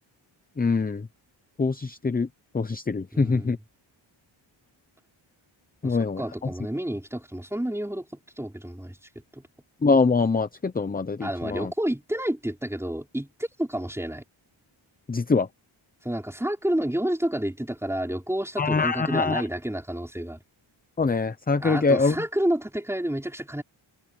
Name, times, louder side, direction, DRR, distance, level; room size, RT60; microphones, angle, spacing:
voice 1, 0.6-1.1 1.6-2.3 2.5-3.6 5.8-6.2 9.8-11.7 15.1-15.5 18.6-19.4 21.0-22.2, left 4 dB, 20° left, 0.6 m, -24 dB
voice 2, 3.1-3.5 5.8-8.1 8.4-9.0 9.3-9.4 11.2-14.2 16.0-20.4 21.6-23.6, right 1 dB, 5° right, 4.8 m, -29 dB
wide cardioid pair, 155°, 48 cm